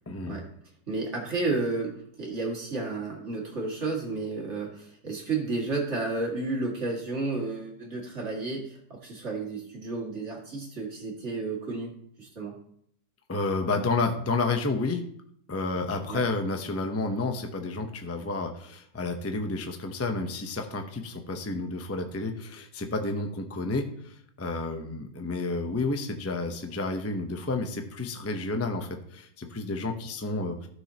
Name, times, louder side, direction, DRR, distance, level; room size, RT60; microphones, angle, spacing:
voice 1, 0.1-0.4 13.3-15.1 15.5-30.7, left 3 dB, 20° left, 5 dB, 0.3 m, -30 dB
voice 2, 0.9-11.9 12.2-12.6 16.1-16.2, right 3 dB, 45° right, -2 dB, 2.2 m, -32 dB
15.0 x 6.3 x 2.9 m, 0.66 s
omnidirectional pair, 1.7 m